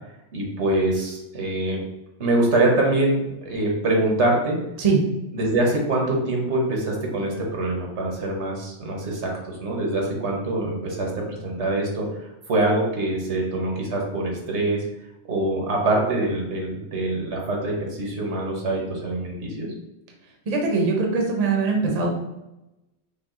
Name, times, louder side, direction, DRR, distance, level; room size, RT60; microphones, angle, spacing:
voice 1, 0.3-1.8 2.2-4.6 5.3-12.1 12.5-14.8 15.3-19.7, right 2 dB, 75° right, 0 dB, 1.3 m, -24 dB
voice 2, 20.5-22.2, right 4 dB, 40° right, 0 dB, 0.8 m, -21 dB
5.6 x 2.4 x 3.7 m, 0.94 s
omnidirectional pair, 1.2 m